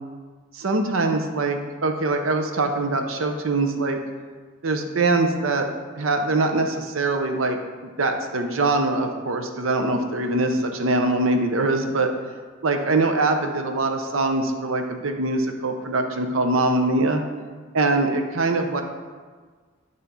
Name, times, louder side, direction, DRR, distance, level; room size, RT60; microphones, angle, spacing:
voice 1, 0.5-4.0 4.6-5.7 6.0-12.1 12.6-17.2 17.7-18.8, right 2 dB, 90° right, 5 dB, 0.8 m, -23 dB
9.1 x 3.3 x 5.5 m, 1.5 s
head